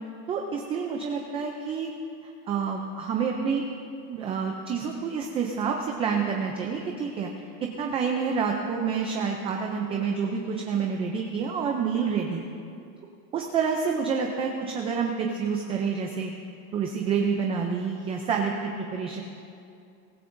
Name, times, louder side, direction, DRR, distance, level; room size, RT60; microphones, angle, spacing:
voice 1, 0.3-1.9 2.5-3.7 4.1-7.3 7.6-12.4 13.3-16.3 16.7-19.2, right 6 dB, 15° right, 1 dB, 0.3 m, -28 dB
23.5 x 15.0 x 2.6 m, 2.5 s
supercardioid pair, 145°, 47 cm